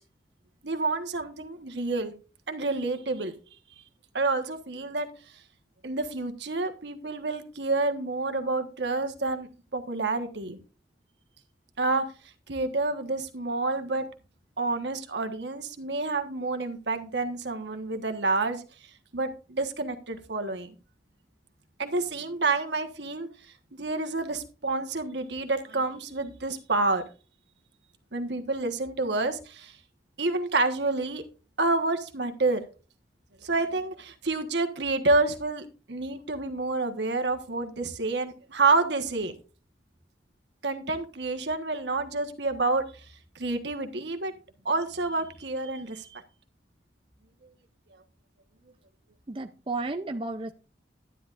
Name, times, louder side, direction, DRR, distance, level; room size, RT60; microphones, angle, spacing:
voice 1, 0.6-2.1 2.5-3.3 4.1-5.1 5.8-10.6 11.8-12.0 12.5-14.1 14.6-18.6 19.1-20.7 21.8-23.3 23.7-27.0 28.1-29.7 30.2-31.2 31.6-32.6 33.4-39.3 40.6-42.8 43.3-44.3 44.6-46.2, right 3 dB, 75° right, 1.4 m, -28 dB
voice 2, 49.3-50.5, right 3 dB, 30° right, 0.5 m, -33 dB
11.5 x 10.5 x 2.5 m
head